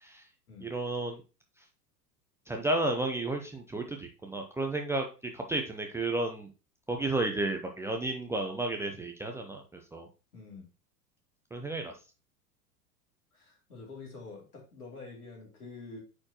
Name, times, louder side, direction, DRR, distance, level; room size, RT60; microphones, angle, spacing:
voice 1, 0.6-1.2 2.5-5.0 5.3-6.5 6.9-10.1 11.5-11.9, right 2 dB, 5° right, 2 dB, 0.6 m, -32 dB
voice 2, 10.3-10.7 13.3-16.0, left 3 dB, 70° left, -1 dB, 2.9 m, -47 dB
9.0 x 4.3 x 2.9 m, 0.32 s
figure-of-eight pair, 90°, 47 cm